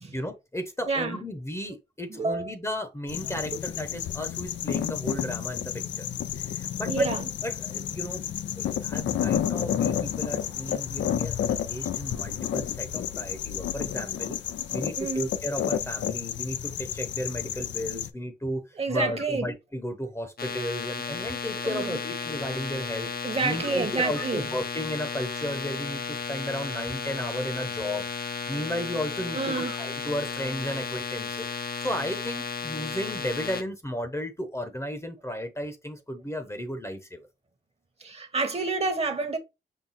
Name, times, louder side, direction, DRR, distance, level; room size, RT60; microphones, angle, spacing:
voice 1, 0.1-6.1 6.3-7.1 7.4-8.2 8.6-14.4 14.7-18.6 18.9-28.1 28.5-37.3, equal, 15° left, 0.8 m, -34 dB
voice 2, 0.9-1.2 2.1-2.5 3.5-3.6 6.9-7.3 15.0-15.2 18.8-19.5 21.6-22.0 23.2-24.4 29.3-29.7 38.0-39.4, right 3 dB, 35° right, 1.0 m, -28 dB
sound 1, 3.1-18.1, left 10 dB, 85° left, 0.4 m, -31 dB
sound 2, 20.4-33.6, left 5 dB, 55° left, 0.7 m, -34 dB
5.7 x 2.2 x 4.0 m
cardioid pair, 85°, 18 cm